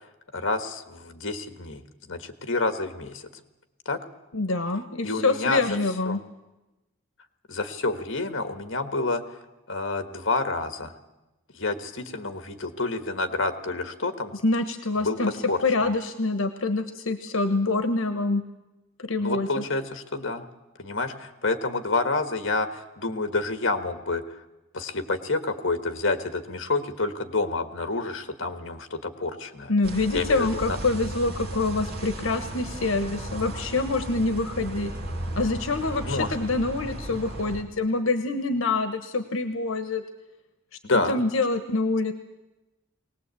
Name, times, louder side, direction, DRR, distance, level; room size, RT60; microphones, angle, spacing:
voice 1, 0.3-3.3 3.9-4.0 5.0-5.6 6.1-6.2 7.5-9.2 9.7-10.9 11.5-14.3 15.0-15.2 15.5-15.6 19.2-20.5 20.8-24.2 24.7-29.7 30.1-30.8 36.0-36.4 40.8-41.2, left 3 dB, 65° left, 9 dB, 1.6 m, -28 dB
voice 2, 4.3-6.2 14.4-15.3 15.6-18.4 19.0-19.6 29.7-34.9 35.4-40.0 41.1-42.1, left 3 dB, 85° left, 9 dB, 1.2 m, -26 dB
sound 1, 29.8-37.6, right 1 dB, 45° right, 2.8 m, -35 dB
21.5 x 18.5 x 8.4 m, 1.0 s
head